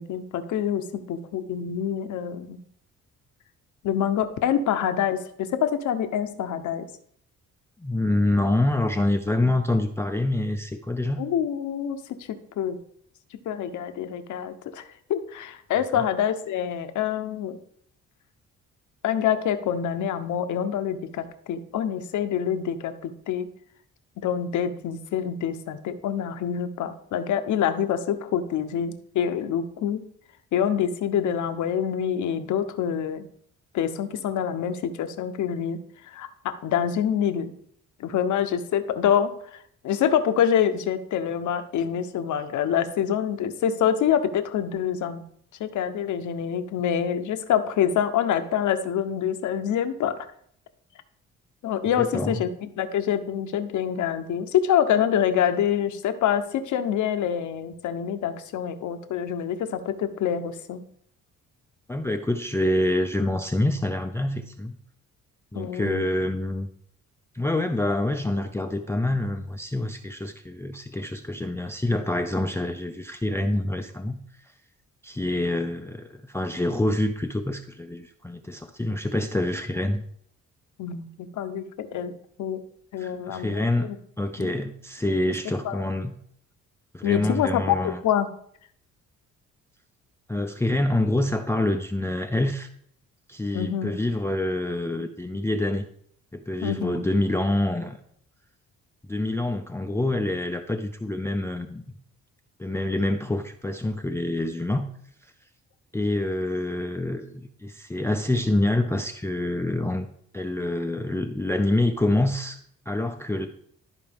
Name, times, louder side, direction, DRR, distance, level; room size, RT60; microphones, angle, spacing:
voice 1, 0.0-2.6 3.8-6.9 11.2-12.8 13.5-14.8 15.1-17.6 19.0-23.5 24.2-30.0 30.5-33.2 33.7-35.8 36.1-37.5 38.0-45.2 45.6-50.2 51.6-60.8 65.5-66.0 80.8-82.1 82.4-82.6 82.9-84.0 84.4-84.5 85.6-85.8 87.0-88.3 93.5-94.0 96.6-97.0, left 9 dB, 75° left, 9 dB, 0.9 m, -26 dB
voice 2, 7.8-11.2 15.9-16.0 51.9-52.4 61.9-64.8 65.5-66.7 67.3-74.5 75.0-80.0 83.0-83.9 84.2-86.1 86.9-88.0 90.3-92.7 93.3-95.8 96.3-98.0 99.1-101.9 102.6-104.9 105.2-105.3 105.9-110.1 110.3-112.6 112.9-113.5, left 1 dB, 10° left, 7 dB, 0.5 m, -26 dB
13.0 x 4.5 x 3.5 m, 0.66 s
cardioid pair, 90°, 30 cm